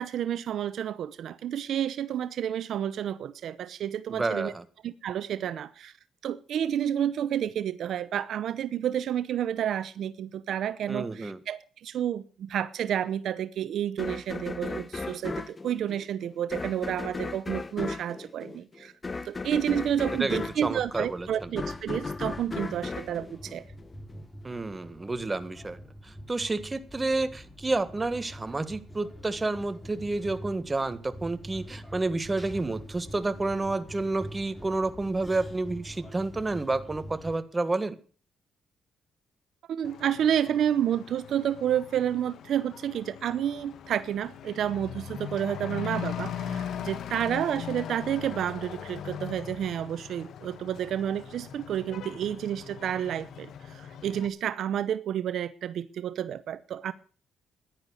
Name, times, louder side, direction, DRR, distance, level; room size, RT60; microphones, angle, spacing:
voice 1, 0.0-4.5 4.8-5.9 6.2-18.9 19.2-23.6 39.7-56.9, right 10 dB, 70° right, 0.8 m, -30 dB
voice 2, 4.1-4.6 10.9-11.4 20.2-21.5 24.4-38.0, right 2 dB, 20° right, 1.7 m, -30 dB
sound 1, 14.0-24.2, left 3 dB, 25° left, 1.2 m, -36 dB
sound 2, 19.7-37.4, equal, 10° left, 4.0 m, -46 dB
Truck / Accelerating revving vroom, 39.8-54.3, left 9 dB, 70° left, 1.4 m, -40 dB
15.0 x 11.0 x 6.4 m
cardioid pair, 90°, 0 cm